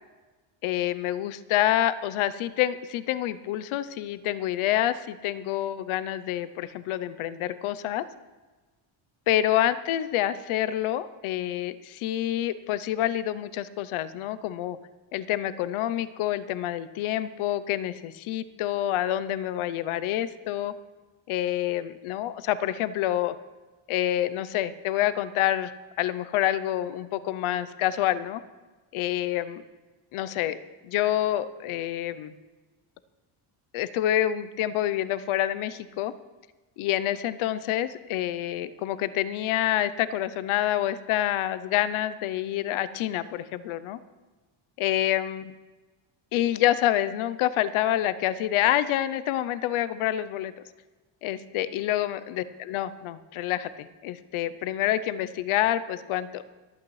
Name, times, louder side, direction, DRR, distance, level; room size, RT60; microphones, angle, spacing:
voice 1, 0.6-8.0 9.3-14.8 15.1-20.7 21.3-23.3 23.9-28.4 28.9-29.6 30.1-30.6 30.8-32.3 33.7-36.1 36.8-44.0 44.8-45.5 46.3-50.5 51.2-56.4, left 12 dB, 75° left, 14 dB, 0.8 m, -27 dB
25.5 x 8.6 x 3.2 m, 1.3 s
cardioid pair, 140°, 49 cm